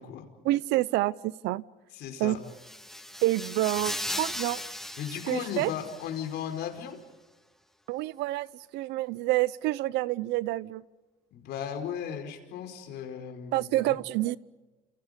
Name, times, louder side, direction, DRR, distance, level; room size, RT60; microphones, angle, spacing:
voice 1, 0.4-1.6 2.2-2.4 3.2-4.6 5.3-5.7 7.9-8.5 8.7-10.8 13.5-14.4, right 17 dB, 90° right, 19 dB, 0.8 m, -28 dB
voice 2, 1.9-2.4 5.0-7.0 11.3-13.9, left 8 dB, 80° left, 5 dB, 5.0 m, -36 dB
sound 1, 2.5-6.3, left 1 dB, ahead, 1.9 m, -37 dB
29.5 x 29.0 x 5.3 m, 1.2 s
cardioid pair, 110°, 17 cm